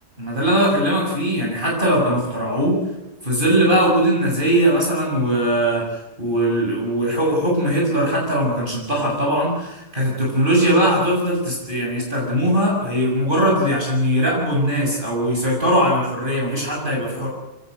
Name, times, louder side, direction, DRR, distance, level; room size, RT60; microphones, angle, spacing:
voice 1, 0.2-2.8 3.2-5.8 6.2-17.3, right 1 dB, 30° right, -2 dB, 7.1 m, -20 dB
24.5 x 18.5 x 8.0 m, 0.97 s
omnidirectional pair, 1.8 m